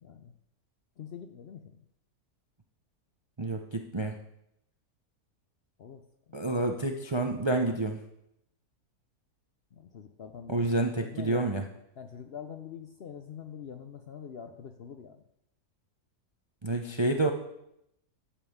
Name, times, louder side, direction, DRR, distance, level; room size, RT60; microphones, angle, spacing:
voice 1, 0.0-0.3 1.0-1.7 5.8-6.0 6.3-6.4 9.7-10.7 11.0-11.5 12.0-15.2, left 7 dB, 55° left, 7 dB, 0.7 m, -44 dB
voice 2, 3.4-4.1 6.3-8.0 10.5-11.6 16.6-17.3, right 2 dB, 30° right, 4 dB, 0.5 m, -28 dB
11.5 x 5.3 x 7.1 m, 0.80 s
omnidirectional pair, 1.6 m